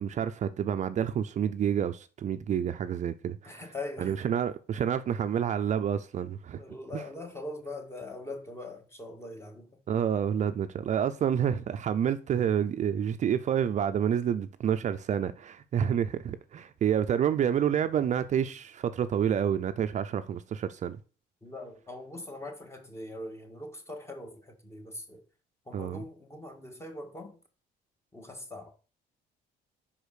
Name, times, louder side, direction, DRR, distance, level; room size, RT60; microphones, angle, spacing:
voice 1, 0.0-3.6 4.0-6.6 6.9-7.0 9.9-21.0 25.7-26.0, right 8 dB, 45° right, 0.6 m, -28 dB
voice 2, 3.4-4.2 6.6-9.8 21.4-25.3 25.7-27.4 28.1-28.7, left 2 dB, 15° left, 1.8 m, -42 dB
5.6 x 5.0 x 6.4 m
cardioid pair, 110°, 17 cm